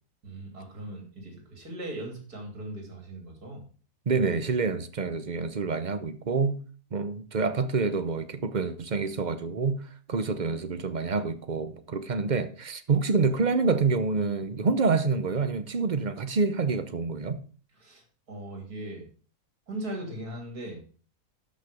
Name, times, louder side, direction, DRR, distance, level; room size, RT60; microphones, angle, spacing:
voice 1, 0.2-3.7 17.7-19.1 19.7-20.8, right 1 dB, 65° right, 3.5 m, -39 dB
voice 2, 4.1-6.6 6.9-9.8 10.1-17.4, right 4 dB, 40° right, 0.7 m, -27 dB
12.5 x 6.0 x 5.2 m
omnidirectional pair, 1.7 m